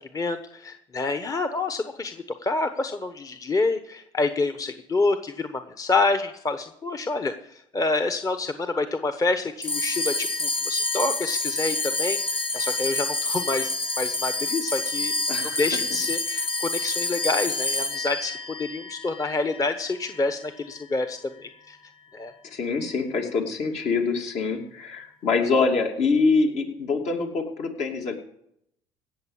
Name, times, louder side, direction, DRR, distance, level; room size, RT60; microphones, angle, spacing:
voice 1, 0.1-13.7 14.0-15.2 15.4-21.8 22.1-22.3, left 3 dB, 25° left, 9 dB, 1.1 m, -27 dB
sound 1, 9.6-20.3, left 2 dB, 45° left, 2.0 m, -28 dB
voice 2, 15.3-15.6 22.5-28.2, left 4 dB, 60° left, 2 dB, 2.7 m, -25 dB
17.0 x 6.9 x 7.2 m, 0.75 s
supercardioid pair, 80°, 13 cm